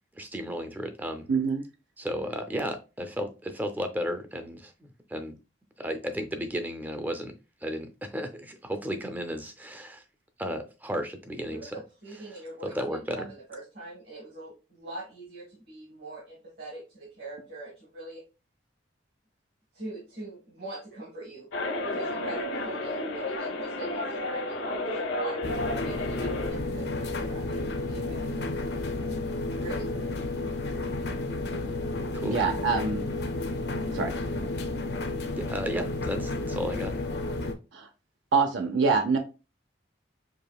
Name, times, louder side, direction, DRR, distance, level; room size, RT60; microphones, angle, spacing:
voice 1, 0.2-1.3 2.0-5.3 5.8-7.3 7.6-10.0 10.4-11.7 12.6-13.3 32.1-32.4 35.3-37.0, equal, 10° right, 0.4 m, -34 dB
voice 2, 1.3-1.6 32.2-33.0 33.9-34.1 37.7-37.9 38.3-39.2, right 5 dB, 80° right, 0.5 m, -25 dB
voice 3, 11.5-18.2 19.7-21.5 21.8-30.2, right 2 dB, 55° right, 1.3 m, -43 dB
sound 1, 21.5-26.5, left 1 dB, 80° left, 0.9 m, -32 dB
sound 2, 25.4-37.5, left 2 dB, 60° left, 0.5 m, -32 dB
4.8 x 2.8 x 2.3 m
head